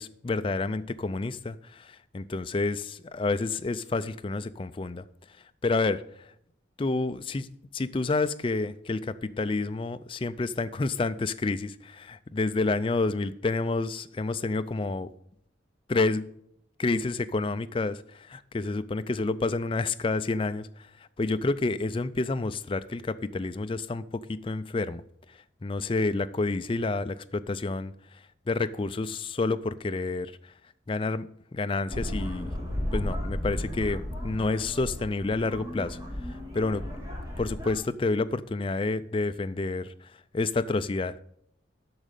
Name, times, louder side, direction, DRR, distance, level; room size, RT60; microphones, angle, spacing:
voice 1, 0.0-5.0 5.6-6.0 6.8-7.5 7.7-15.1 15.9-16.3 16.8-20.9 21.2-25.0 25.6-27.9 28.5-30.5 30.9-32.5 32.9-36.0 36.5-37.1 37.4-41.2, left 3 dB, 25° left, 11 dB, 0.4 m, -29 dB
sound 1, 31.9-37.8, left 1 dB, 20° right, 2.0 m, -34 dB
8.8 x 6.3 x 6.6 m, 0.72 s
head